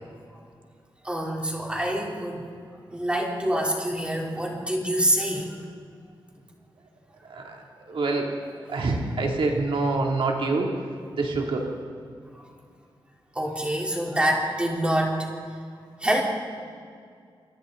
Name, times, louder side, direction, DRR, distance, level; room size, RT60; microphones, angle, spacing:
voice 1, 1.0-2.5 2.9-5.6 13.4-15.3 16.0-16.2, right 1 dB, 10° right, -2 dB, 3.7 m, -26 dB
voice 2, 7.3-8.3 8.7-10.7 11.1-11.7, right 3 dB, 75° right, 0 dB, 2.9 m, -26 dB
28.0 x 24.0 x 4.0 m, 2.2 s
wide cardioid pair, 145°, 9 cm